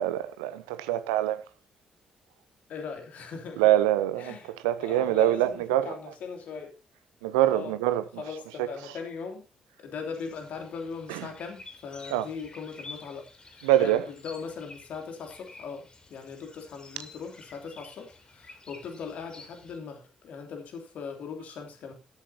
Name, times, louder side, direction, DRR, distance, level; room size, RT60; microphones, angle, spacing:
voice 1, 0.0-1.4 3.6-6.0 7.2-8.2 8.6-8.7 11.1-11.3 12.1-12.3 13.6-14.0, right 13 dB, 70° right, 0.8 m, -25 dB
voice 2, 2.7-3.6 4.2-4.5 4.8-6.7 7.5-7.7 8.2-9.4 9.8-21.9, left 5 dB, 55° left, 3.0 m, -39 dB
sound 1, 10.1-19.8, left 3 dB, 30° left, 3.6 m, -50 dB
13.0 x 12.5 x 2.8 m
figure-of-eight pair, 40°, 3 cm